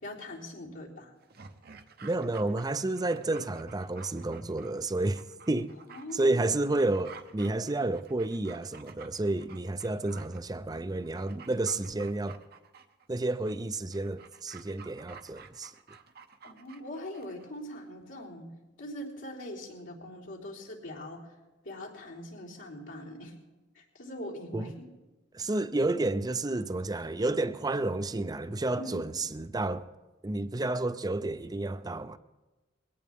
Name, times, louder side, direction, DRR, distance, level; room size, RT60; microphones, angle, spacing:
voice 1, 0.0-1.1 5.9-6.4 16.4-18.5 18.8-21.3 21.6-23.4 23.7-24.7 25.8-26.0 28.7-29.0, left 1 dB, 80° left, 3.7 m, -42 dB
Dog, 1.2-17.5 17.8-17.9, right 5 dB, 55° right, 0.8 m, -52 dB
voice 2, 2.0-5.7 6.1-12.4 13.1-15.7 24.5-24.7 25.3-29.9 30.2-32.2, right 2 dB, 20° right, 0.6 m, -30 dB
22.0 x 17.5 x 3.6 m
head